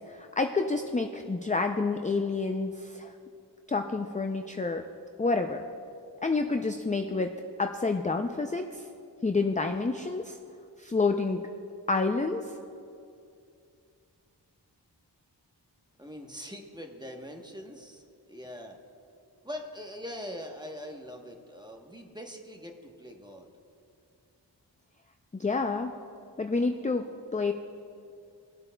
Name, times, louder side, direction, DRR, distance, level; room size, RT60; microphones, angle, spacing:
voice 1, 0.1-3.1 3.7-4.8 5.2-5.6 6.2-8.8 9.2-10.4 10.8-11.4 11.9-12.5 25.3-25.9 26.4-27.1 27.3-27.5, left 3 dB, 20° left, 5 dB, 0.4 m, -28 dB
voice 2, 16.0-18.8 19.4-23.5, equal, 10° right, 2 dB, 1.0 m, -42 dB
23.5 x 7.9 x 2.2 m, 2.5 s
wide cardioid pair, 40°, 43 cm